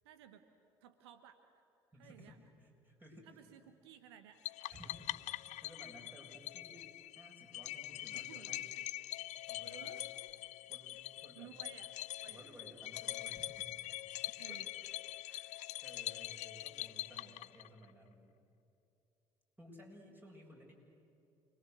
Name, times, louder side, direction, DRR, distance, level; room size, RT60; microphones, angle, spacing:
voice 1, 0.0-0.5 0.8-1.4 2.0-2.4 3.3-4.5 8.1-8.9 9.6-10.1 11.4-11.9 12.2-12.5 14.4-14.7, right 10 dB, 85° right, 9 dB, 1.2 m, -57 dB
voice 2, 1.9-3.5 4.6-6.9 7.1-8.6 9.5-10.0 10.7-11.5 12.3-13.7 14.2-14.6 15.3-18.3 19.6-20.7, equal, 15° right, -1 dB, 7.8 m, -57 dB
sound 1, 4.4-17.9, left 16 dB, 60° left, 0.5 m, -44 dB
29.0 x 22.0 x 8.0 m, 2.8 s
hypercardioid pair, 60°, 14 cm